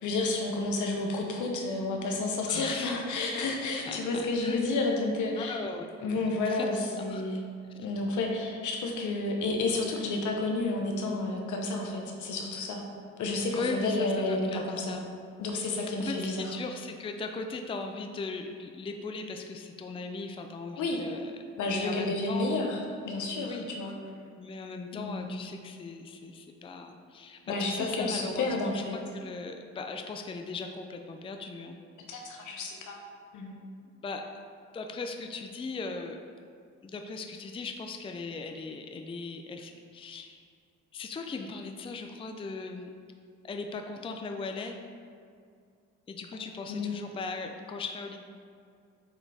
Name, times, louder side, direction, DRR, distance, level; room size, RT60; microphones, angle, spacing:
voice 1, 0.0-5.6 6.0-7.4 7.8-12.8 13.2-15.0 15.4-16.5 20.7-21.0 21.6-22.8 23.0-23.9 24.9-25.5 27.5-29.0 32.1-33.0 33.3-33.5 46.7-46.9, left 2 dB, 75° left, 1 dB, 1.0 m, -31 dB
voice 2, 2.5-2.9 3.8-4.6 5.4-5.9 6.4-6.7 6.9-7.3 13.5-15.0 15.5-21.3 21.7-22.5 23.4-23.7 24.4-31.8 34.0-34.4 34.7-36.2 36.8-40.4 40.9-42.9 43.4-44.8 46.1-48.2, left 3 dB, 20° left, 5 dB, 0.4 m, -38 dB
7.2 x 3.9 x 3.4 m, 2.3 s
cardioid pair, 90°, 30 cm